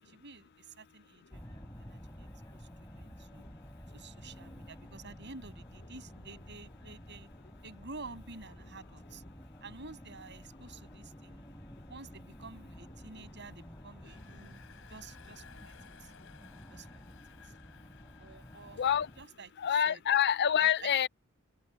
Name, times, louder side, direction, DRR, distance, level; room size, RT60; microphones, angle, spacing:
voice 1, 0.0-3.5 3.9-7.3 7.6-9.2 9.6-11.5 11.9-14.6 14.9-15.7 16.0-16.1 16.7-17.0 17.4-17.5 18.2-18.9 19.2-20.0 20.6-20.9, right 3 dB, 55° right, 7.7 m, -50 dB
sound 1, 1.3-19.3, equal, 15° left, 4.6 m, -51 dB
Engine, 14.0-19.9, left 6 dB, 75° left, 3.6 m, -58 dB
voice 2, 18.8-19.1 19.6-21.1, left 9 dB, 50° left, 0.5 m, -26 dB
open air
head